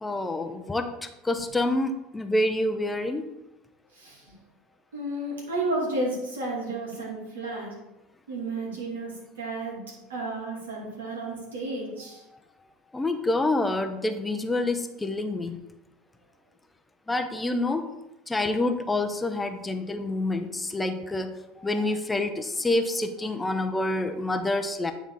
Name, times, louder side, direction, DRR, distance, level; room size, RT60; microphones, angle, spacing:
voice 1, 0.0-3.3 12.9-15.6 17.1-17.9 18.3-24.9, left 2 dB, 15° left, 8 dB, 0.7 m, -27 dB
voice 2, 3.9-4.3 4.9-7.7 8.3-12.2, right 2 dB, 80° right, -3 dB, 2.6 m, -32 dB
9.1 x 4.0 x 3.8 m, 0.96 s
hypercardioid pair, 80°, 0 cm